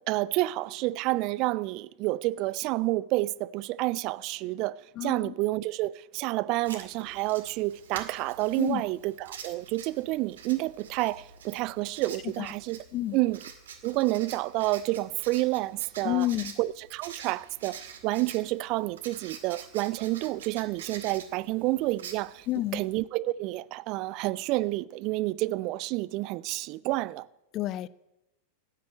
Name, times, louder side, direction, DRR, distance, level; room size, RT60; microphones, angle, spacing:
voice 1, 0.1-12.8 13.1-13.4 13.8-16.3 16.6-22.5 22.7-27.3, right 19 dB, 40° right, 0.5 m, -29 dB
voice 2, 5.0-5.3 8.6-8.8 12.4-12.5 12.9-13.2 16.0-16.5 22.5-22.8 27.5-27.9, left 14 dB, 35° left, 0.5 m, -29 dB
Writing, 6.6-22.9, right 7 dB, 65° right, 2.1 m, -47 dB
13.0 x 9.4 x 9.1 m
figure-of-eight pair, 90°, 0 cm